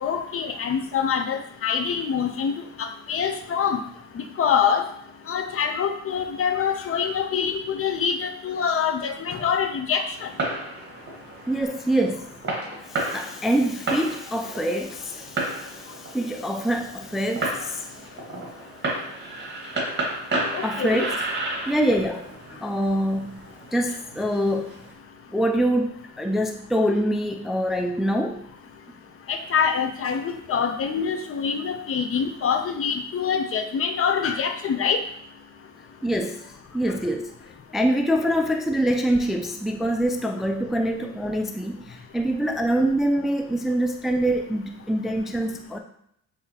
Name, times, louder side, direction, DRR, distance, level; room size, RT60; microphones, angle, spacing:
voice 1, 0.0-3.8 4.1-4.9 5.3-10.3 20.5-21.1 29.3-35.0, left 7 dB, 50° left, 6 dB, 0.6 m, -25 dB
Fireworks, 10.1-24.9, right 2 dB, 35° right, 1.5 m, -33 dB
voice 2, 11.5-12.3 12.8-17.9 18.3-18.4 20.6-21.2 21.7-22.3 22.6-23.3 23.7-24.8 25.3-28.4 36.0-37.4 37.7-45.8, right 1 dB, ahead, 4 dB, 0.3 m, -25 dB
5.7 x 2.8 x 2.8 m, 0.72 s
cardioid pair, 90°, 30 cm